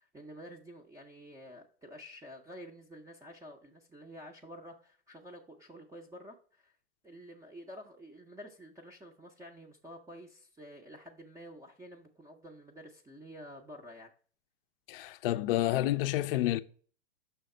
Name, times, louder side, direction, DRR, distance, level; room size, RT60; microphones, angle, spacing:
voice 1, 0.0-6.8 7.0-14.1, equal, 10° right, 0.5 m, -50 dB
voice 2, 14.9-16.6, left 14 dB, 55° left, 0.5 m, -29 dB
5.7 x 3.4 x 5.2 m
hypercardioid pair, 125°, 35 cm